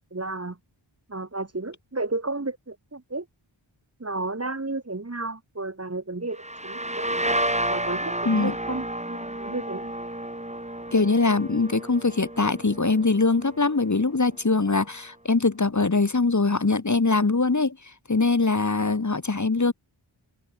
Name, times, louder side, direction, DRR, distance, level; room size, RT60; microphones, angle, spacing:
voice 1, 0.1-0.6 1.1-3.3 4.0-7.2 7.7-9.9, right 2 dB, 30° right, 1.9 m, -32 dB
sound 1, 6.3-13.9, right 1 dB, 15° right, 4.0 m, -31 dB
voice 2, 10.9-19.7, left 3 dB, 35° left, 1.7 m, -22 dB
cardioid pair, 40°, 49 cm